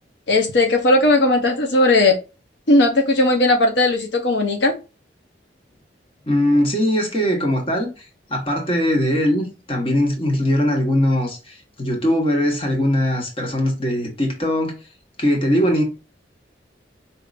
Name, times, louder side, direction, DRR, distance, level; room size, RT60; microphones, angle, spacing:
voice 1, 0.3-2.2 2.7-4.7, left 2 dB, 80° left, 0.8 m, -17 dB
voice 2, 6.3-14.8 15.2-15.8, left 1 dB, 30° left, 1.2 m, -20 dB
5.1 x 2.8 x 2.4 m
head